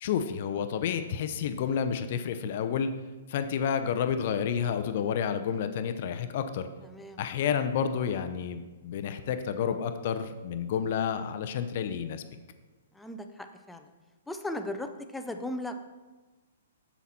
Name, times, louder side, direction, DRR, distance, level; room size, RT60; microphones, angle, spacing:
voice 1, 0.0-2.9 3.3-6.7 7.2-12.2, left 7 dB, 50° left, 10 dB, 0.6 m, -30 dB
voice 2, 6.9-7.2 13.0-13.8 14.3-15.8, left 1 dB, 5° left, 6 dB, 0.6 m, -37 dB
7.2 x 7.1 x 4.2 m, 1.2 s
figure-of-eight pair, 115°, 0 cm